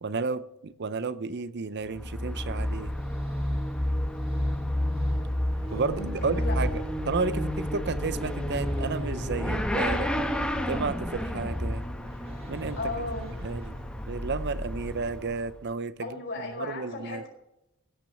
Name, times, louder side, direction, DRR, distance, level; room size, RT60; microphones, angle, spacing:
voice 1, 0.0-2.9 5.7-10.1 10.7-11.8 12.5-12.8 13.4-13.8 14.1-17.2, right 4 dB, 50° right, 15 dB, 0.6 m, -32 dB
Motorcycle / Accelerating revving vroom, 1.8-15.7, left 1 dB, 5° left, 1.2 m, -31 dB
sound 1, 2.5-14.4, equal, 25° right, 2.0 m, -40 dB
voice 2, 6.0-6.6 12.8-13.3 16.0-17.3, left 2 dB, 55° left, 1 dB, 5.2 m, -35 dB
16.5 x 6.2 x 6.8 m, 0.88 s
head